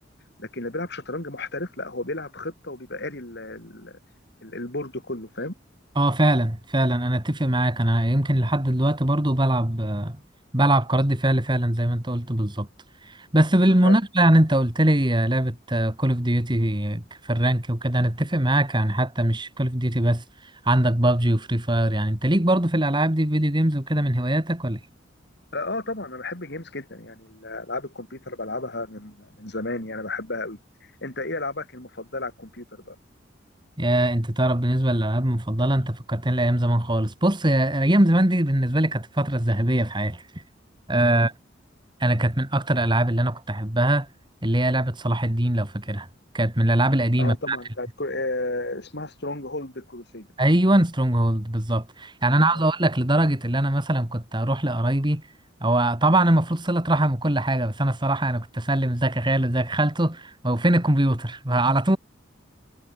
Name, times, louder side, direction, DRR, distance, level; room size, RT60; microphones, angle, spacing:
voice 1, 0.4-4.0 4.4-5.5 13.8-14.0 25.5-33.0 41.1-41.2 47.2-50.3 52.3-52.7, left 2 dB, 60° left, 5.3 m, -33 dB
voice 2, 6.0-10.2 10.5-12.7 13.1-20.2 20.6-24.8 33.8-40.2 40.9-41.3 42.0-44.1 44.4-46.1 46.3-47.6 50.4-55.2 55.6-62.0, right 1 dB, 25° right, 2.5 m, -22 dB
head